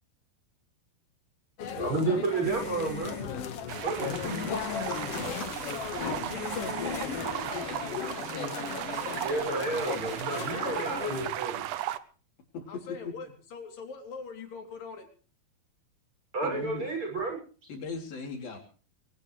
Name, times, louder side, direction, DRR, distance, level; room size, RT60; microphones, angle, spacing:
sound 1, 1.6-11.3, left 8 dB, 55° left, 2.1 m, -36 dB
voice 1, 1.7-3.1 3.8-4.1 9.2-11.6 16.3-17.4, right 3 dB, 35° right, 2 dB, 7.3 m, -31 dB
sound 2, 2.4-7.9, left 1 dB, 10° right, 5.0 m, -43 dB
sound 3, 3.7-12.0, right 13 dB, 70° right, 2.1 m, -36 dB
voice 2, 4.2-5.0 6.6-6.7 12.5-12.7 13.0-13.1 16.4-16.9 17.7-18.6, left 4 dB, 90° left, 2 dB, 5.6 m, -38 dB
voice 3, 6.3-7.1 7.6-8.5 12.7-15.1, left 4 dB, 70° left, 4 dB, 4.8 m, -44 dB
22.0 x 18.5 x 3.3 m, 0.39 s
omnidirectional pair, 4.1 m